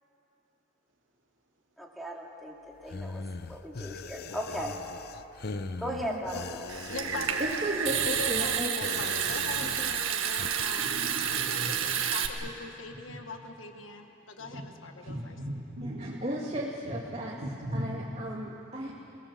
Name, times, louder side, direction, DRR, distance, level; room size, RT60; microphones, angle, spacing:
voice 1, 1.8-4.8 5.8-6.7, equal, ahead, -1 dB, 2.6 m, -37 dB
sound 1, 2.8-10.6, left 3 dB, 50° left, 0.7 m, -41 dB
voice 2, 5.9-6.2 7.0-7.1 7.4-8.7 9.6-9.9 15.0-15.1 15.8-17.4 17.7-18.9, right 1 dB, 30° right, -3 dB, 2.1 m, -35 dB
Water tap faucet / Sink (filling or washing) / Trickle dribble, 6.7-12.3, right 8 dB, 85° right, 1.6 m, -30 dB
voice 3, 6.9-7.4 8.0-10.9 11.2-15.4, left 3 dB, 70° left, 5 dB, 1.4 m, -41 dB
voice 4, 10.8-11.7 14.4-14.6 15.1-16.2 17.4-18.0, equal, 65° right, -2 dB, 3.2 m, -37 dB
29.5 x 19.0 x 7.4 m, 2.9 s
head